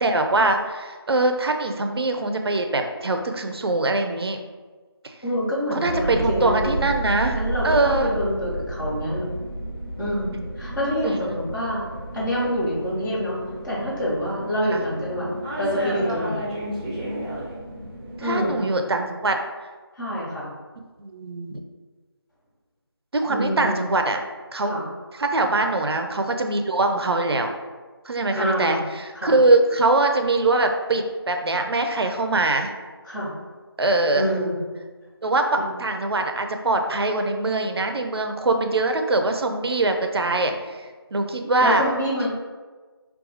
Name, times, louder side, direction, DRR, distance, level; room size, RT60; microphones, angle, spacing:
voice 1, 0.0-4.4 5.7-8.1 11.0-11.4 14.7-14.8 18.2-19.4 21.0-21.6 23.1-24.2 24.5-24.7 25.1-27.5 28.0-32.7 33.8-34.3 35.2-40.9 41.1-41.8, right 2 dB, 70° right, 5 dB, 0.4 m, -22 dB
voice 2, 5.2-6.8 7.3-9.3 10.0-11.8 12.1-13.4 13.6-15.3 15.6-16.4 18.2-18.6 19.9-20.5 23.3-23.8 24.6-24.8 28.3-28.8 29.1-29.3 33.0-33.3 34.1-34.6 35.5-35.6 41.6-42.3, equal, 50° left, -7 dB, 1.3 m, -26 dB
sound 1, 5.8-18.6, right 1 dB, 15° right, 0.6 m, -32 dB
2.6 x 2.3 x 4.0 m, 1.4 s
figure-of-eight pair, 165°, 13 cm